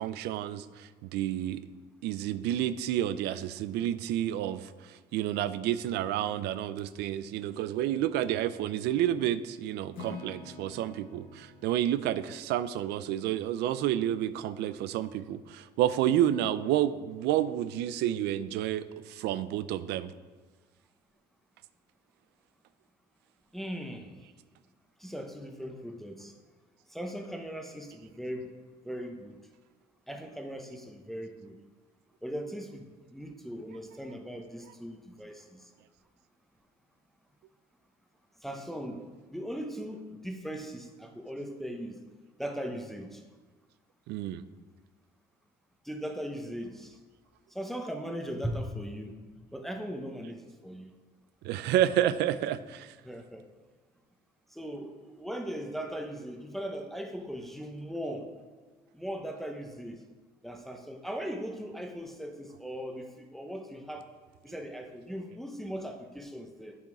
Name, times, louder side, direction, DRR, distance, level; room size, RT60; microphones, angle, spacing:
voice 1, 0.0-1.6 2.0-20.1 44.1-44.4 51.4-52.9, right 12 dB, 85° right, 14 dB, 0.5 m, -30 dB
Acoustic guitar / Strum, 9.9-14.0, left 3 dB, 60° left, 1.8 m, -48 dB
voice 2, 23.5-24.1 25.0-26.3 26.9-28.5 28.8-29.4 30.1-31.6 32.2-35.7 38.4-42.0 42.4-43.2 45.8-47.0 47.5-49.2 49.5-50.9 53.0-53.5 54.5-58.3 58.9-60.0 60.4-64.1 64.4-66.8, equal, ahead, 3 dB, 0.9 m, -39 dB
8.3 x 7.1 x 4.9 m, 1.4 s
cardioid pair, 110°, 17 cm